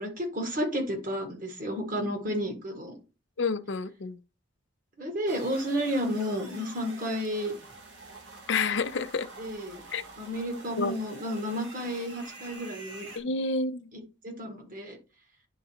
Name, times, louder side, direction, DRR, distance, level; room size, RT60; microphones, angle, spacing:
voice 1, 0.0-3.0 5.0-7.5 9.4-9.8 10.2-13.1 13.9-15.0, equal, 40° right, 1.9 m, -32 dB
voice 2, 3.4-4.2 8.5-9.3 9.9-10.0 10.8-11.0 13.2-13.9, left 4 dB, 65° left, 0.5 m, -29 dB
sound 1, 5.3-13.2, right 3 dB, 65° right, 1.7 m, -47 dB
10.5 x 3.7 x 2.9 m
head